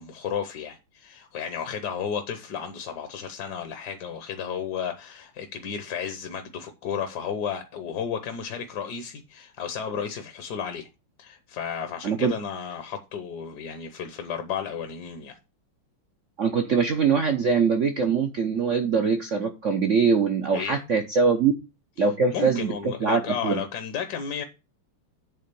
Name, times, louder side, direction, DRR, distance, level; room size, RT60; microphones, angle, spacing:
voice 1, 0.0-10.9 11.2-15.4 20.5-20.8 22.0-22.1 22.3-24.4, left 7 dB, 55° left, 1.3 m, -33 dB
voice 2, 16.4-21.5 22.0-22.7 23.0-23.6, right 5 dB, 60° right, 0.8 m, -23 dB
8.7 x 3.7 x 6.7 m
omnidirectional pair, 2.4 m